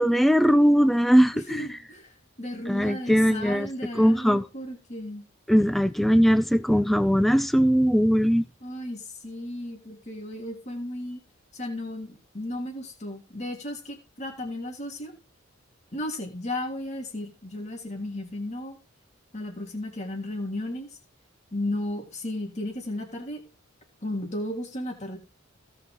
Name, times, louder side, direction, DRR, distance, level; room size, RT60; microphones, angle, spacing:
voice 1, 0.0-1.8 2.7-3.7 3.9-4.4 5.5-8.4, equal, ahead, 0.5 m, -20 dB
voice 2, 1.5-2.1 2.4-5.2 8.6-11.2 11.5-15.1 15.9-18.8 19.3-20.9 21.5-23.4 24.0-25.2, left 1 dB, 35° left, 2.9 m, -34 dB
17.0 x 5.9 x 3.8 m
head